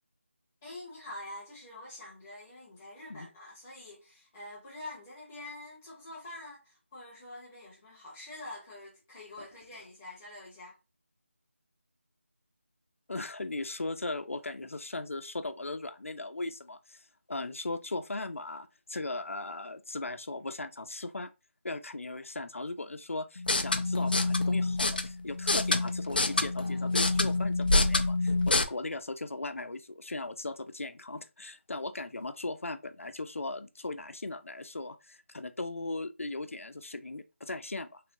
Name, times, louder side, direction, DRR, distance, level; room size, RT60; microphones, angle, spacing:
voice 1, 0.6-10.7, left 1 dB, 5° left, 0.8 m, -46 dB
voice 2, 13.1-21.3 21.6-38.0, left 2 dB, 85° left, 0.6 m, -38 dB
sound 1, 23.4-28.6, left 2 dB, 45° left, 0.5 m, -27 dB
3.4 x 3.3 x 2.9 m
figure-of-eight pair, 175°, 7 cm